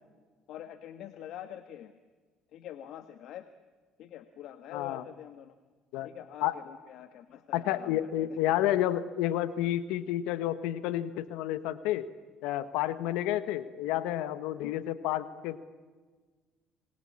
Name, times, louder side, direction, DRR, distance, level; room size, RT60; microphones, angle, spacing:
voice 1, 0.5-1.9 2.5-3.5 4.0-5.5 6.0-8.3 14.6-14.8, left 10 dB, 70° left, 11 dB, 1.3 m, -45 dB
voice 2, 4.7-5.0 5.9-6.1 6.4-6.5 7.5-12.1 12.4-15.6, left 13 dB, 85° left, 14 dB, 1.2 m, -30 dB
26.5 x 21.5 x 8.7 m, 1.4 s
supercardioid pair, 90°, 0 cm